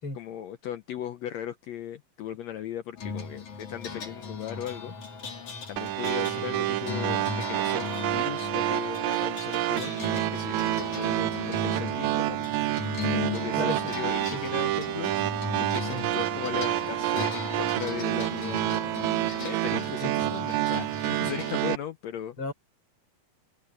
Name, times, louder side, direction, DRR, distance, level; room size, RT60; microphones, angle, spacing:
voice 1, 0.1-5.3 5.7-12.7 13.1-18.9 19.4-22.4, left 11 dB, 75° left, 1.6 m, -38 dB
sound 1, 3.0-21.5, left 4 dB, 55° left, 5.3 m, -37 dB
sound 2, 5.8-21.8, right 16 dB, 80° right, 1.7 m, -28 dB
voice 2, 13.6-13.9 14.3-14.5 15.9-16.1 20.0-20.1 22.4-22.5, left 3 dB, 35° left, 6.0 m, -35 dB
omnidirectional pair, 4.0 m